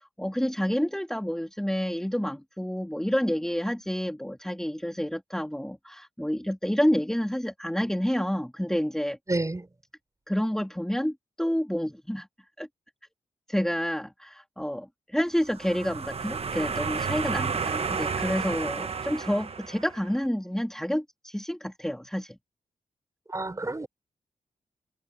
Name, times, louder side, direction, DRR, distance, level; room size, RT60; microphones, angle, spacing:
voice 1, 0.0-9.2 10.3-12.3 12.6-12.7 13.5-22.4, equal, 5° left, 2.6 m, -29 dB
voice 2, 9.3-9.7 23.3-23.9, right 2 dB, 20° right, 5.8 m, -29 dB
sound 1, 15.4-20.2, right 5 dB, 45° right, 1.3 m, -31 dB
cardioid pair, 65°, 14 cm